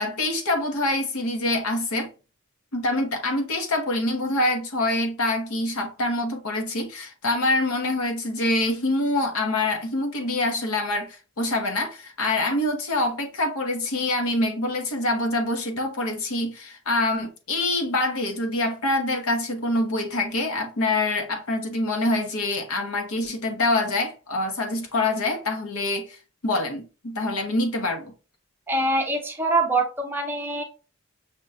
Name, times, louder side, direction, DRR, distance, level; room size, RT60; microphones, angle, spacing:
voice 1, 0.0-2.1 2.7-28.1, left 2 dB, 80° left, 0.8 m, -25 dB
voice 2, 28.7-30.6, right 2 dB, 10° right, 0.5 m, -24 dB
5.9 x 2.2 x 2.5 m
head